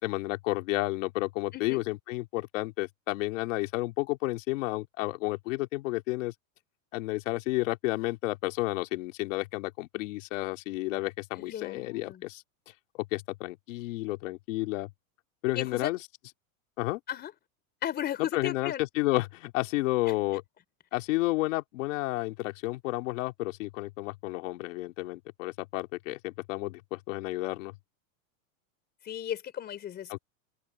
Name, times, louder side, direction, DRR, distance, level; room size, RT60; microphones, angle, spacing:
voice 1, 0.0-6.3 6.9-12.4 12.9-14.9 15.4-16.0 16.8-17.0 18.2-20.4 20.9-27.7 30.1-30.2, left 20 dB, 65° left, 2.8 m, -31 dB
voice 2, 11.5-12.3 15.6-15.9 17.1-17.3 17.8-18.8 20.1-20.2 29.0-30.2, left 10 dB, 25° left, 3.8 m, -35 dB
open air
supercardioid pair, 160°, 41 cm